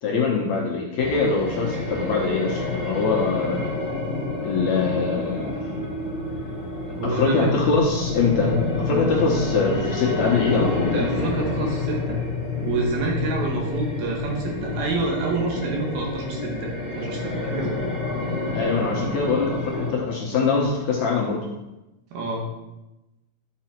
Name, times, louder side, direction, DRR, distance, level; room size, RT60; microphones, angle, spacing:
voice 1, 0.0-3.7 4.4-5.7 7.0-11.2 18.5-21.5, left 4 dB, 65° left, -2 dB, 2.0 m, -23 dB
sound 1, 1.0-19.9, left 3 dB, 20° left, 1.2 m, -28 dB
voice 2, 6.9-7.5 10.9-12.2 12.6-17.9 22.1-22.5, right 3 dB, 80° right, 0 dB, 3.6 m, -28 dB
11.0 x 6.1 x 4.5 m, 0.97 s
omnidirectional pair, 4.3 m